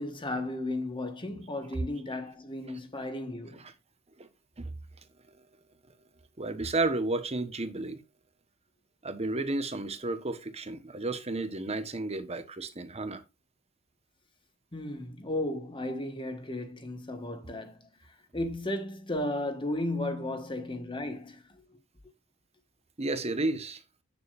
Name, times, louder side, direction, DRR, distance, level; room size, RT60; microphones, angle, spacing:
voice 1, 0.0-3.7 14.7-21.6, left 1 dB, 25° left, 1.6 m, -35 dB
voice 2, 6.4-8.0 9.0-13.2 23.0-23.8, right 2 dB, 30° right, 1.2 m, -32 dB
8.8 x 7.1 x 2.5 m
head